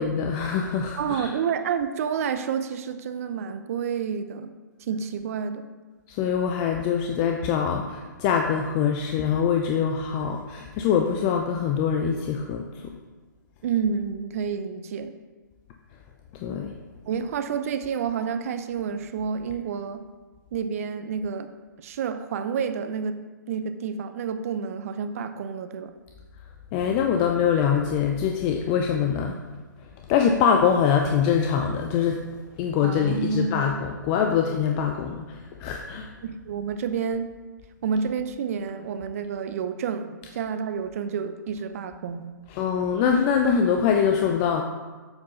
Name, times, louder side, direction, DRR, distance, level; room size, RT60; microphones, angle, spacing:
voice 1, 0.0-1.3 6.1-12.9 16.4-16.7 26.7-29.4 30.1-36.1 42.5-44.6, left 7 dB, 25° left, 3 dB, 0.5 m, -24 dB
voice 2, 1.0-4.5 4.8-5.7 13.6-15.1 17.1-20.0 20.5-21.5 21.8-23.2 23.5-25.9 32.8-33.7 36.2-37.3 37.8-42.3, right 6 dB, 45° right, 9 dB, 0.6 m, -29 dB
7.8 x 4.4 x 5.6 m, 1.3 s
hypercardioid pair, 140°, 11 cm